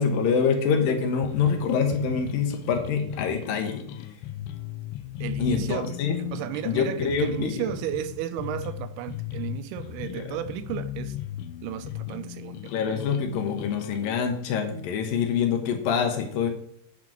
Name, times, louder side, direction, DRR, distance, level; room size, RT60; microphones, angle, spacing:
voice 1, 0.0-4.1 5.4-6.2 6.6-7.7 10.0-10.4 12.7-16.5, left 6 dB, 70° left, 2.8 m, -26 dB
sound 1, 1.2-14.2, left 13 dB, 85° left, 1.8 m, -37 dB
voice 2, 5.2-6.0 6.3-11.2 11.6-12.7, right 11 dB, 85° right, 2.7 m, -33 dB
9.2 x 5.9 x 5.9 m
omnidirectional pair, 4.4 m